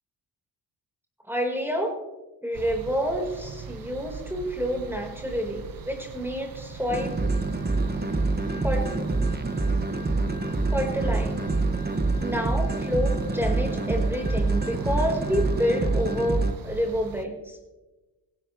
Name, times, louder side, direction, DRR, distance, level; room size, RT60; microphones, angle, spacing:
voice 1, 1.2-2.0 2.4-7.2 8.6-8.9 10.7-11.4 12.2-17.6, equal, 5° right, 1 dB, 4.3 m, -28 dB
sound 1, 2.5-17.3, right 6 dB, 50° right, 1.3 m, -41 dB
sound 2, 6.9-16.5, right 3 dB, 20° right, 1.8 m, -26 dB
19.5 x 17.0 x 3.2 m, 1.1 s
supercardioid pair, 45°, 45 cm